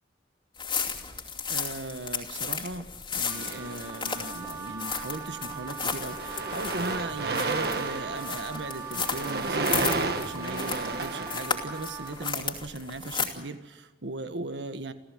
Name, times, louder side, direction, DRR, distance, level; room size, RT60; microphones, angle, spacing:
sound 1, 0.6-13.3, left 5 dB, 25° left, 2.7 m, -34 dB
voice 1, 1.5-14.9, right 2 dB, 85° right, 9 dB, 1.5 m, -38 dB
Wind instrument woodwind instrument, 3.2-12.4, right 5 dB, 20° right, 5.1 m, -41 dB
sound 2, 3.4-4.4 5.1-5.3 5.6-12.1, right 3 dB, 60° right, 1.6 m, -32 dB
29.5 x 14.5 x 7.9 m, 1.2 s
head